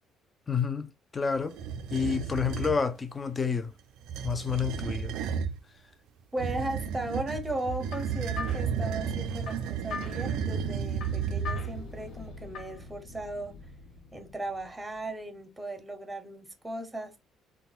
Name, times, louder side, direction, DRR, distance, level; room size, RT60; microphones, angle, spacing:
voice 1, 0.5-1.6 1.9-3.7 4.2-5.2, left 6 dB, 25° left, 0.4 m, -29 dB
sound 1, 1.5-2.8 4.0-5.6 6.4-11.9, right 7 dB, 85° right, 0.4 m, -33 dB
voice 2, 6.3-13.6 14.1-17.1, right 1 dB, 15° right, 0.7 m, -37 dB
sound 2, 7.5-12.9, left 6 dB, 60° left, 0.8 m, -43 dB
sound 3, 11.0-15.2, left 2 dB, 80° left, 1.0 m, -47 dB
3.7 x 2.2 x 2.3 m
cardioid pair, 115°, 0 cm